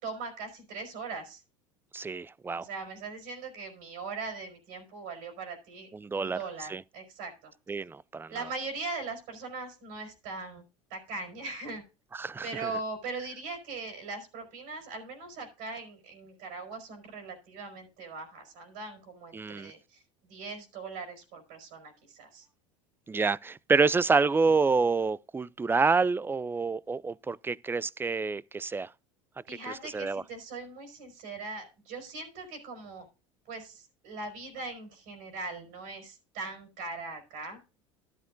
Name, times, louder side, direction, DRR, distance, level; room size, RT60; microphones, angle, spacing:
voice 1, 0.0-1.4 2.5-5.9 6.2-7.5 8.3-10.6 10.9-11.8 12.4-20.0 20.3-22.5 29.5-33.1 33.5-37.6, right 3 dB, 65° right, 4.8 m, -40 dB
voice 2, 1.9-2.7 5.9-6.4 6.7-6.8 7.7-8.3 12.2-12.7 19.3-19.7 23.1-28.9 29.8-30.2, right 4 dB, 15° right, 0.4 m, -28 dB
12.5 x 11.5 x 2.6 m
hypercardioid pair, 80°, 16 cm